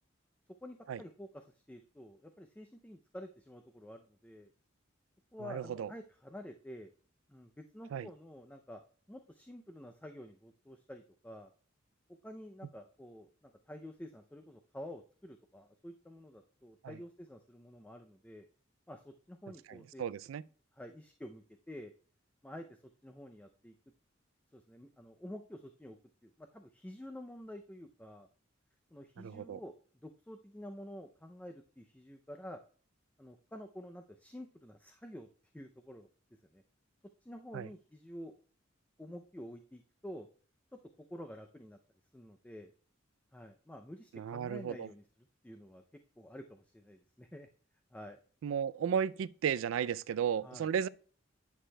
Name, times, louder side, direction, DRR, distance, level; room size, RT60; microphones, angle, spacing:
voice 1, 0.6-4.5 5.3-6.9 7.3-8.8 9.1-11.5 12.2-18.5 18.9-20.1 20.8-21.9 22.4-22.8 23.0-23.7 24.5-26.0 26.2-28.3 28.9-29.7 30.0-32.6 33.2-35.3 35.5-36.1 36.5-36.6 37.2-38.3 39.0-40.3 41.1-41.8 42.1-42.7 43.3-45.0 45.4-45.8 46.2-47.5 47.9-48.2 50.4-50.7, left 1 dB, 5° left, 0.4 m, -49 dB
voice 2, 5.4-5.9 7.9-8.1 16.8-16.9 19.7-20.4 29.2-29.6 37.5-37.7 44.1-44.9 48.4-50.9, right 8 dB, 80° right, 0.3 m, -34 dB
10.0 x 6.3 x 2.2 m
head